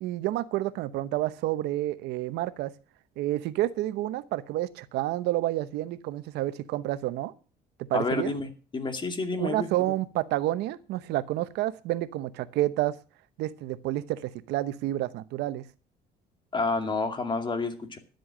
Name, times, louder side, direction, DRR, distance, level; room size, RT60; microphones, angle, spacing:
voice 1, 0.0-2.7 3.2-7.3 7.9-8.3 9.4-13.0 13.4-15.6, right 15 dB, 85° right, 14 dB, 0.9 m, -29 dB
voice 2, 7.9-9.7 16.5-18.0, left 3 dB, 30° left, 6 dB, 2.3 m, -29 dB
12.0 x 7.9 x 7.3 m, 0.37 s
cardioid pair, 110°, 17 cm